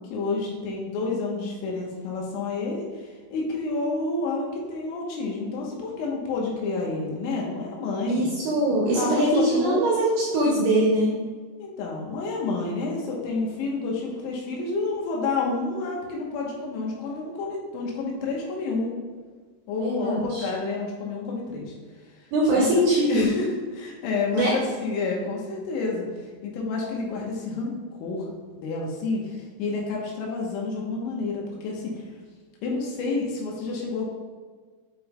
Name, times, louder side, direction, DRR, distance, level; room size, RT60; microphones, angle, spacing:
voice 1, 0.1-8.2 8.9-9.9 11.6-18.9 19.7-21.7 22.5-22.7 23.1-23.5 23.7-28.3 28.6-32.0 32.6-34.1, left 3 dB, 75° left, -2 dB, 3.3 m, -29 dB
voice 2, 8.1-11.1 19.8-20.5 22.3-23.3 24.3-24.5, right 1 dB, 75° right, -4 dB, 2.5 m, -22 dB
9.2 x 5.2 x 2.2 m, 1.5 s
omnidirectional pair, 5.7 m